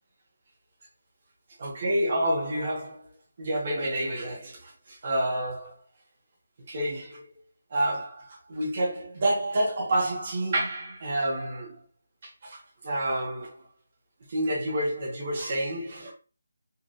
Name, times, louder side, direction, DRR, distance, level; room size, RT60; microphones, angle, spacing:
voice 1, 1.6-3.1 3.4-5.8 6.7-7.3 7.7-11.8 12.2-13.7 14.3-16.1, right 1 dB, 30° right, 1.6 m, -29 dB
5.5 x 3.6 x 2.6 m
figure-of-eight pair, 175°, 0 cm